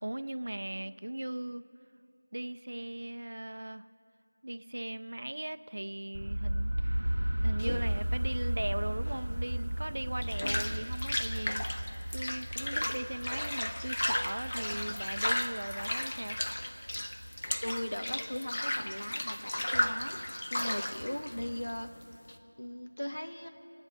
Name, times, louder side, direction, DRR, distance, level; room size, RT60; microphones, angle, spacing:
voice 1, 0.0-1.6 2.3-3.9 4.4-7.0 7.4-11.7 12.1-16.4, right 1 dB, 35° right, 12 dB, 0.4 m, -38 dB
sound 1, 6.1-18.0, right 1 dB, 75° right, 0.7 m, -35 dB
sound 2, 7.6-22.4, left 1 dB, 25° left, 0.7 m, -35 dB
voice 2, 17.6-20.2 20.5-21.9 22.6-23.5, left 1 dB, 70° left, 5 dB, 1.5 m, -38 dB
29.5 x 10.0 x 3.2 m, 2.9 s
figure-of-eight pair, 180°, 0 cm